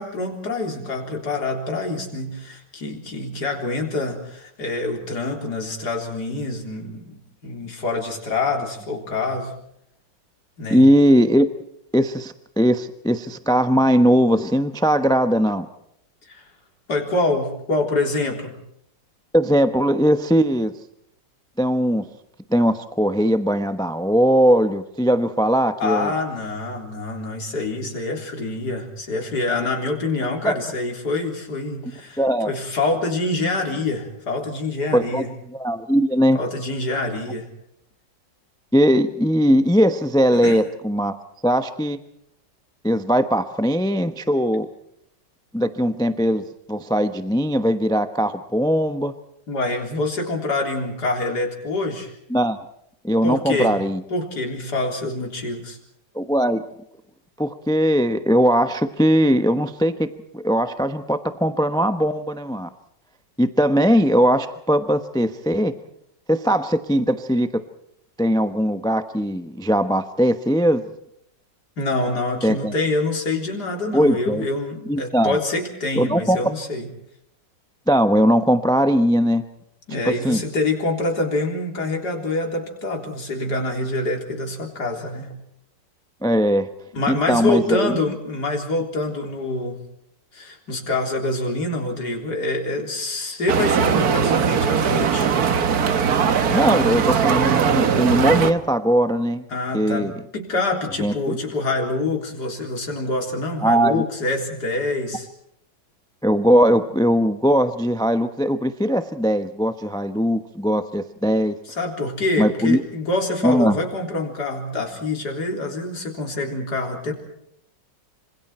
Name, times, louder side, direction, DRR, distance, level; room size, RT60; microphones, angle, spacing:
voice 1, 0.0-7.2 7.4-9.5 10.6-10.8 16.3-16.5 16.9-18.5 25.8-35.3 36.3-37.5 40.3-40.6 49.5-52.1 53.2-53.7 54.1-55.8 71.8-76.9 79.9-85.4 86.9-89.8 90.3-95.3 99.5-105.3 111.7-117.1, left 2 dB, 60° left, 2 dB, 4.3 m, -26 dB
voice 2, 10.7-11.5 11.9-15.7 19.3-20.7 21.6-22.0 22.5-26.1 30.4-30.5 32.2-32.5 34.9-35.2 35.5-36.4 38.7-41.1 41.4-42.0 42.8-44.7 45.5-49.1 52.3-52.6 53.0-54.0 56.1-56.6 57.4-62.7 63.4-65.7 66.3-67.5 68.2-70.8 72.4-72.7 73.9-74.5 74.9-75.4 75.9-76.4 77.9-79.4 80.0-80.4 86.2-86.7 87.1-87.9 96.5-99.4 99.7-100.1 101.0-101.4 103.6-104.0 106.2-111.5 112.4-112.8 113.4-113.8, equal, 5° left, 10 dB, 0.7 m, -19 dB
sound 1, 93.5-98.5, right 6 dB, 55° right, 1.7 m, -19 dB
26.5 x 26.5 x 4.4 m, 0.74 s
omnidirectional pair, 2.0 m